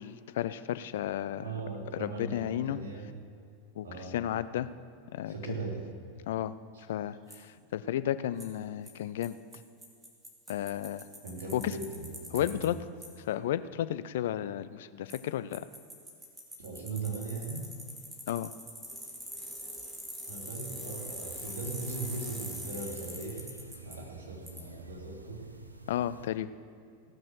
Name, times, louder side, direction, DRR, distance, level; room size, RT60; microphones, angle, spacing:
voice 1, 0.0-1.4 2.0-2.8 3.8-4.7 5.1-5.3 6.3-6.5 6.9-9.4 10.5-11.1 11.5-11.7 12.3-12.8 13.3-15.7 18.3-18.5 25.9-26.5, left 11 dB, 60° left, 14 dB, 0.4 m, -33 dB
voice 2, 1.4-3.1 3.8-4.2 5.3-5.8 6.7-6.8 11.2-12.7 16.6-17.6 20.3-23.5 23.8-25.5, right 3 dB, 65° right, -2 dB, 3.0 m, -39 dB
Bicycle, 7.3-7.4 8.4-8.5 8.9-9.0 9.2-9.3 9.5-9.6 9.8-12.7 13.0-13.1 15.1-15.2 15.5-24.0 24.5-24.6, right 1 dB, 10° right, 2.4 m, -43 dB
sound 1, 21.3-26.3, right 2 dB, 90° right, 0.7 m, -51 dB
16.5 x 6.3 x 6.4 m, 2.3 s
figure-of-eight pair, 90°, 0 cm